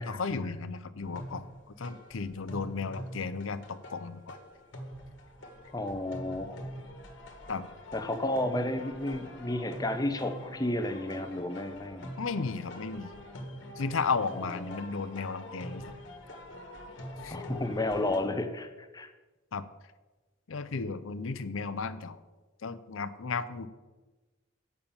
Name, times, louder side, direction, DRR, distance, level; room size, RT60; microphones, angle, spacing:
voice 1, 0.0-1.5 1.8-4.4 7.5-7.7 12.2-13.1 13.8-15.9 17.2-17.4 19.5-19.6 20.5-22.2 22.6-23.7, left 4 dB, 80° left, 13 dB, 0.6 m, -34 dB
sound 1, 1.0-18.2, equal, 60° left, 1.4 m, -44 dB
voice 2, 5.7-6.7 7.9-12.1 14.3-14.8 17.3-19.1, left 1 dB, 20° left, 8 dB, 0.7 m, -32 dB
8.8 x 5.5 x 7.1 m, 1.2 s
head